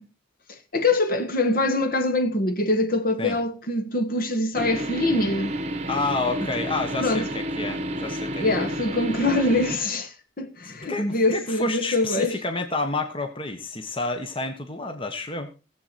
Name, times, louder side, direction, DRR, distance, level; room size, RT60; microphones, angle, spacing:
voice 1, 0.5-5.5 7.0-7.3 8.4-12.4, left 2 dB, 45° left, 1.4 m, -24 dB
sound 1, 4.6-9.8, right 1 dB, 35° right, 1.0 m, -30 dB
voice 2, 5.9-8.7 10.6-15.5, left 3 dB, 25° left, 1.3 m, -29 dB
18.0 x 7.6 x 4.3 m
head